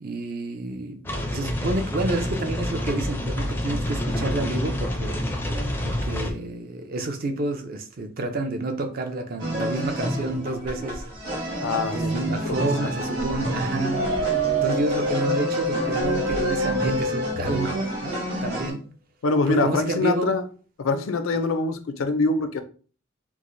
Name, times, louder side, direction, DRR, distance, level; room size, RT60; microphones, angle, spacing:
voice 1, 0.0-5.3 5.8-11.0 11.9-14.0 14.6-18.2 18.4-18.8 19.5-20.3, right 2 dB, 45° right, 0.5 m, -29 dB
sound 1, 1.0-6.3, equal, 10° left, 0.4 m, -28 dB
sound 2, 9.4-18.7, right 1 dB, 60° right, 1.6 m, -29 dB
voice 2, 11.6-12.9 17.4-17.5 19.2-20.4 20.8-22.6, left 3 dB, 80° left, 0.5 m, -25 dB
sound 3, 13.9-18.1, right 1 dB, 85° right, 0.9 m, -26 dB
4.6 x 2.0 x 2.6 m
head